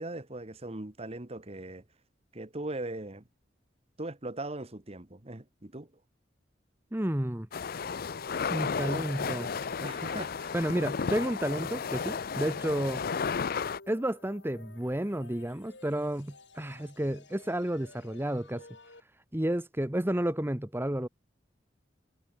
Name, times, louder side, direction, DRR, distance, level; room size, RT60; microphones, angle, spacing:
voice 1, 0.0-1.8 2.3-3.3 4.0-5.9 9.8-10.5, right 2 dB, 35° right, 1.5 m, -39 dB
voice 2, 6.9-7.5 8.5-9.5 10.5-13.0 13.9-18.7 19.3-21.1, right 1 dB, 10° right, 1.0 m, -31 dB
sound 1, 7.5-13.8, left 5 dB, 55° left, 0.5 m, -33 dB
sound 2, 7.7-19.0, left 3 dB, 70° left, 4.8 m, -55 dB
head